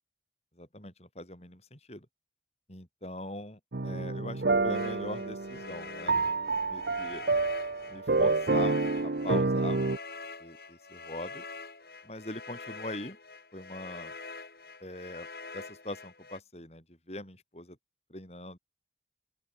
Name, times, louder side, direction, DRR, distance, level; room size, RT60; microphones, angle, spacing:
voice 1, 0.6-2.1 2.7-6.1 6.7-7.2 7.9-8.8 9.0-9.8 10.4-11.4 12.0-13.2 13.5-14.1 14.8-15.3 15.5-17.8 18.1-18.6, left 1 dB, 35° left, 7.8 m, -41 dB
sound 1, 3.7-10.0, right 3 dB, 70° right, 0.9 m, -28 dB
sound 2, 4.7-16.4, left 4 dB, 60° left, 3.2 m, -45 dB
open air
head